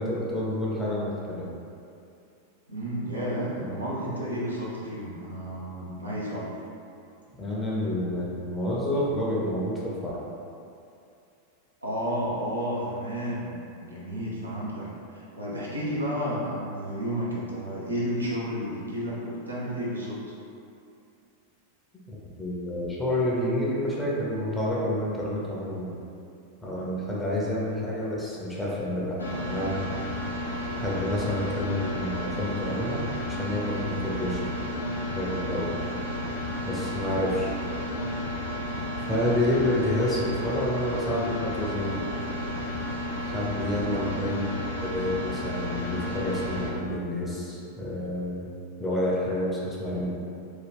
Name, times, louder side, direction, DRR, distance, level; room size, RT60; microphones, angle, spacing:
voice 1, 0.0-1.5 3.6-3.7 7.4-10.2 22.1-26.0 26.6-29.8 30.8-34.6 35.1-35.8 36.6-37.5 39.1-42.0 43.2-44.5 44.8-48.5 48.8-50.1, left 1 dB, 10° left, -6 dB, 0.7 m, -29 dB
voice 2, 2.7-6.5 11.8-13.5 13.8-20.2 43.9-44.1, equal, 80° right, -7 dB, 0.7 m, -32 dB
sound 1, 29.2-46.7, equal, 80° left, 0.5 m, -32 dB
2.9 x 2.3 x 3.5 m, 2.6 s
figure-of-eight pair, 90°, 0 cm